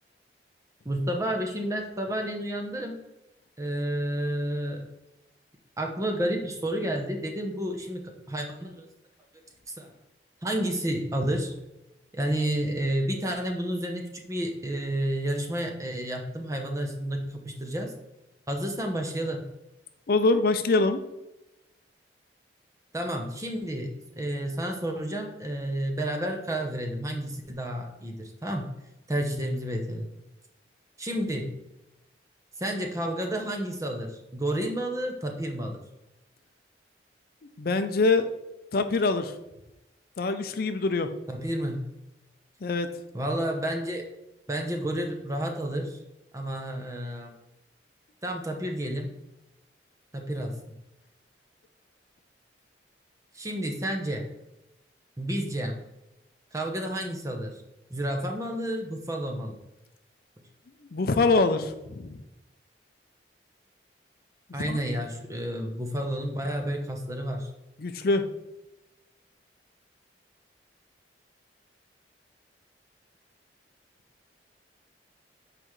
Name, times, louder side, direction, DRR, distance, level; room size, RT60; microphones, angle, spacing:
voice 1, 0.8-3.0 3.6-4.9 5.8-8.9 9.7-9.9 10.4-11.5 12.1-17.9 18.5-19.4 22.9-28.7 29.1-30.1 31.0-31.5 32.6-35.8 41.3-41.8 43.1-44.1 44.5-46.0 46.3-47.3 48.2-49.1 50.1-50.6 53.3-54.3 55.2-55.8 56.5-57.5 57.9-59.6 64.5-67.5, right 1 dB, 20° right, 3 dB, 0.8 m, -30 dB
voice 2, 20.1-21.0 37.6-38.3 38.7-39.3 40.2-41.1 42.6-42.9 60.9-62.2 64.6-64.8 67.8-68.3, left 3 dB, 55° left, 8 dB, 0.5 m, -24 dB
7.7 x 5.0 x 3.1 m, 0.93 s
head